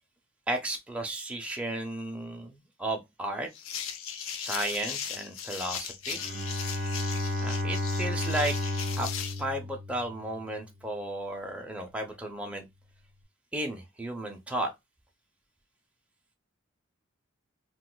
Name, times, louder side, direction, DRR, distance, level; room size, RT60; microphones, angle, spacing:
voice 1, 0.5-3.5 4.4-6.2 7.4-8.6 9.0-9.1 9.4-12.7 13.5-14.7, right 1 dB, 5° right, 0.5 m, -34 dB
sound 1, 3.5-9.4, left 8 dB, 80° left, 0.5 m, -38 dB
Bowed string instrument, 6.1-10.5, left 1 dB, 50° right, 0.6 m, -32 dB
2.5 x 2.2 x 3.8 m
head